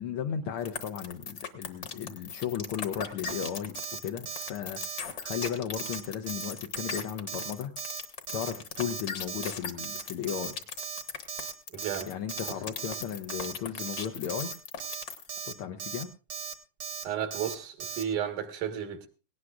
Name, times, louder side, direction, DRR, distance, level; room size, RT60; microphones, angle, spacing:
voice 1, 0.0-3.7 4.0-7.7 8.3-10.6 12.1-14.5 15.4-16.1, left 8 dB, 85° left, 1.2 m, -35 dB
sound 1, 0.6-15.3, left 6 dB, 50° left, 1.4 m, -38 dB
Alarm, 3.3-3.5 3.8-4.0 4.3-4.5 4.8-5.0 5.3-5.5 5.8-6.0 6.3-6.5 6.8-7.0 7.3-7.5 7.8-8.0 8.3-8.5 8.8-9.0 9.3-9.5 9.8-10.0 10.3-10.5 10.8-11.0 11.3-11.5 11.8-12.0 12.3-12.5 12.8-13.0 13.3-13.5 13.8-14.0 14.3-14.5 14.8-15.0 15.3-15.5 15.8-16.0 16.3-16.5 16.8-17.0 17.3-17.5 17.8-18.0, right 7 dB, 55° right, 1.2 m, -37 dB
voice 2, 11.7-12.1 17.0-19.1, right 9 dB, 90° right, 2.9 m, -33 dB
18.0 x 17.5 x 2.4 m
omnidirectional pair, 3.4 m